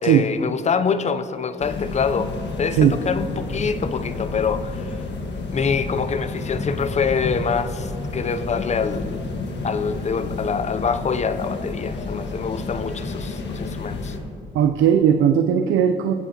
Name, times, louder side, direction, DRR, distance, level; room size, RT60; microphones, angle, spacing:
voice 1, 0.0-2.3 2.6-4.9 5.5-9.2 9.6-14.2, left 6 dB, 35° left, 12 dB, 0.6 m, -25 dB
sound 1, 1.6-14.2, left 3 dB, 60° left, 1.5 m, -30 dB
voice 2, 14.5-16.1, right 9 dB, 80° right, 7 dB, 0.5 m, -17 dB
21.0 x 8.1 x 2.9 m, 2.5 s
cardioid pair, 90°, 20 cm